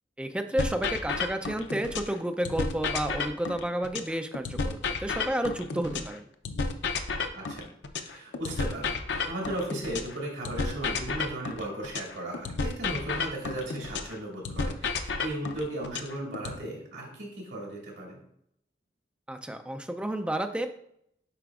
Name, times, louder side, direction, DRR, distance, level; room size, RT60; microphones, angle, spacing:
voice 1, 0.2-6.2 19.3-20.7, right 1 dB, 5° right, 6 dB, 0.4 m, -31 dB
sound 1, 0.6-2.2 2.4-6.2 6.4-10.2 10.4-14.2 14.4-16.6, left 4 dB, 75° left, 0.6 m, -32 dB
voice 2, 7.3-18.2, right 1 dB, 80° right, -2 dB, 2.3 m, -36 dB
8.3 x 5.0 x 2.4 m, 0.73 s
head